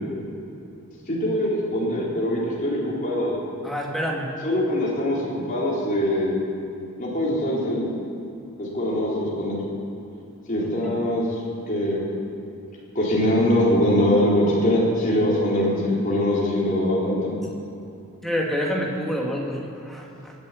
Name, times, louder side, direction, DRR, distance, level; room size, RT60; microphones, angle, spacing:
voice 1, 1.1-3.4 4.4-6.4 7.0-7.8 8.6-9.6 10.5-11.2 11.7-12.0 12.9-17.4, left 1 dB, 35° left, -5 dB, 4.0 m, -22 dB
voice 2, 3.6-4.3 10.6-10.9 18.2-20.3, equal, ahead, -2 dB, 2.0 m, -28 dB
19.0 x 7.9 x 8.5 m, 2.8 s
head